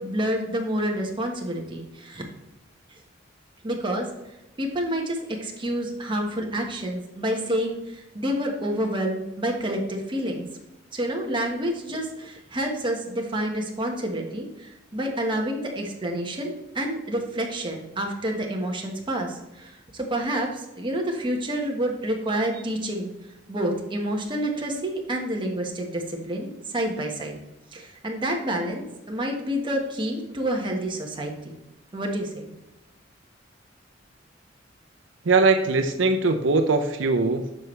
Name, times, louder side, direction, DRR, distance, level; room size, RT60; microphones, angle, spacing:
voice 1, 0.0-2.2 3.6-4.1 4.6-10.5 10.9-23.1 23.5-27.3 27.7-31.6 31.9-32.5, right 1 dB, 25° right, 0 dB, 1.5 m, -28 dB
voice 2, 35.3-37.6, right 3 dB, 80° right, 6 dB, 0.7 m, -21 dB
9.4 x 6.3 x 3.3 m, 0.93 s
head